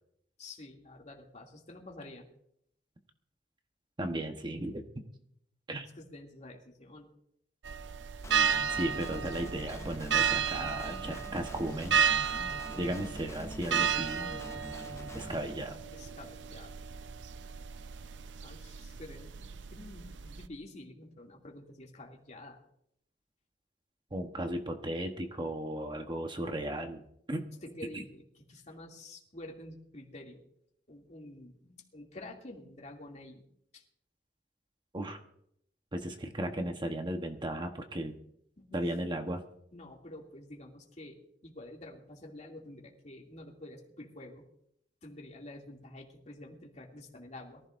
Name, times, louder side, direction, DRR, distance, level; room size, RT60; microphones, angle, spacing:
voice 1, 0.4-2.3 5.9-7.1 12.7-13.0 14.2-14.6 15.8-16.8 18.4-22.6 27.6-30.4 30.9-33.4 33.7-33.8 38.6-38.8 39.7-44.4 45.0-47.6, left 1 dB, 40° left, 0 dB, 2.6 m, -49 dB
voice 2, 4.0-4.8 5.7-5.9 8.7-12.0 12.8-14.2 15.1-15.8 24.1-27.5 27.9-28.0 34.9-35.2 35.9-38.2 38.7-39.4, right 1 dB, 25° right, 5 dB, 1.1 m, -35 dB
sound 1, 7.6-20.5, right 7 dB, 85° right, 0.6 m, -33 dB
Guitar, 8.2-15.4, left 1 dB, 15° left, 0.6 m, -45 dB
23.0 x 15.0 x 2.6 m, 0.72 s
head